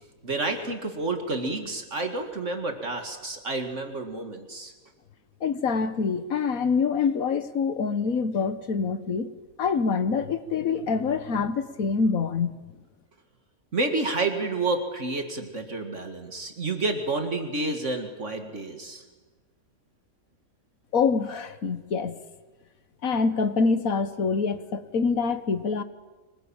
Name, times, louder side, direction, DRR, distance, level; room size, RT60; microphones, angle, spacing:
voice 1, 0.2-4.7 13.7-19.0, right 3 dB, 60° right, 2.5 m, -29 dB
voice 2, 5.4-9.3 9.6-12.5 20.9-22.2 23.0-25.8, left 5 dB, 80° left, 1.7 m, -25 dB
25.0 x 20.5 x 8.9 m
omnidirectional pair, 1.5 m